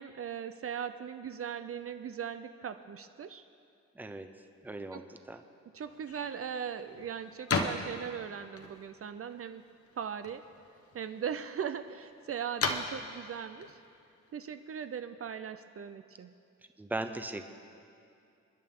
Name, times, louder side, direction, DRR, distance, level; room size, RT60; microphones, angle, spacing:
voice 1, 0.0-3.4 4.9-5.0 5.7-9.6 10.0-10.4 10.9-13.8 14.3-16.3, right 8 dB, 50° right, 10 dB, 0.5 m, -39 dB
voice 2, 3.9-4.3 4.6-5.4 16.8-17.5, right 2 dB, 5° right, 7 dB, 0.6 m, -38 dB
sound 1, 5.8-15.0, left 4 dB, 50° left, 1.0 m, -39 dB
29.0 x 10.5 x 3.7 m, 2.5 s
wide cardioid pair, 155°, 29 cm